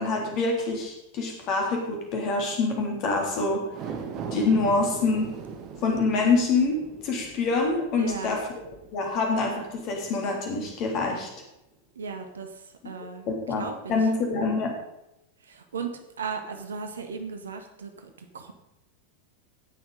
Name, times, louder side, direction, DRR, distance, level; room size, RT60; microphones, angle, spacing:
voice 1, 0.0-3.6 4.3-5.3 5.8-8.4 8.9-11.3 13.3-14.7, left 3 dB, 40° left, 2 dB, 3.3 m, -26 dB
sound 1, 3.6-10.2 10.6-10.7, right 6 dB, 40° right, 1.7 m, -40 dB
voice 2, 7.9-8.4 11.9-13.3 13.6-14.0 15.4-18.5, right 5 dB, 70° right, 6 dB, 1.5 m, -36 dB
16.5 x 6.6 x 5.3 m, 0.89 s
figure-of-eight pair, 90°, 0 cm